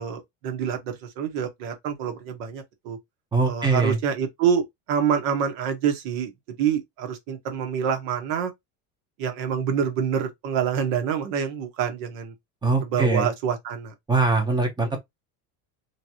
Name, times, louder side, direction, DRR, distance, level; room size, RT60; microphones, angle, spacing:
voice 1, 0.0-3.0 3.4-4.6 4.9-6.3 6.6-8.5 9.2-12.3 12.8-13.9, right 7 dB, 65° right, 1.6 m, -26 dB
voice 2, 3.3-4.0 12.6-13.3 14.1-15.0, right 3 dB, 10° right, 0.8 m, -22 dB
3.7 x 3.3 x 2.9 m
cardioid pair, 170°, 41 cm